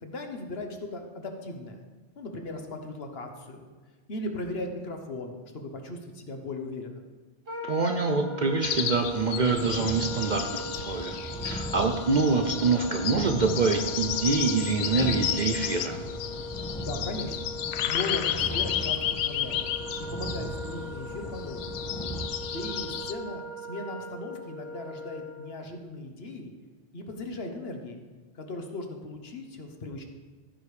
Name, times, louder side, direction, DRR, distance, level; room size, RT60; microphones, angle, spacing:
voice 1, 0.0-1.8 2.2-3.7 4.1-7.1 16.8-17.4 17.8-19.6 20.1-21.8 22.5-26.5 26.9-28.0 28.3-30.0, left 2 dB, 55° left, 4 dB, 1.3 m, -37 dB
Wind instrument woodwind instrument, 7.5-25.6, right 1 dB, 85° right, 2.2 m, -40 dB
voice 2, 7.7-16.0, right 4 dB, 45° right, 4 dB, 0.7 m, -26 dB
sound 1, 8.6-23.1, left 10 dB, 75° left, 0.9 m, -33 dB
sound 2, 9.5-22.3, right 1 dB, 5° left, 1.1 m, -39 dB
15.5 x 5.1 x 4.9 m, 1.4 s
omnidirectional pair, 1.2 m